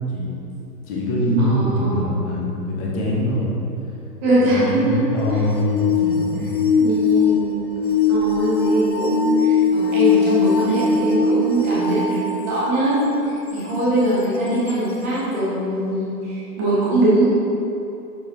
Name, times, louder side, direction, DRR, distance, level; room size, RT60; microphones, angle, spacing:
voice 1, 0.9-3.5 4.5-6.5, equal, 20° left, -3 dB, 0.9 m, -23 dB
voice 2, 1.4-2.1 4.2-5.4 6.8-7.7 8.1-17.3, right 1 dB, 10° right, -9 dB, 0.5 m, -22 dB
sound 1, 5.2-12.9 13.6-13.7 14.7-14.8, left 4 dB, 85° left, 0.8 m, -20 dB
6.4 x 6.3 x 2.8 m, 2.8 s
figure-of-eight pair, 120°, 49 cm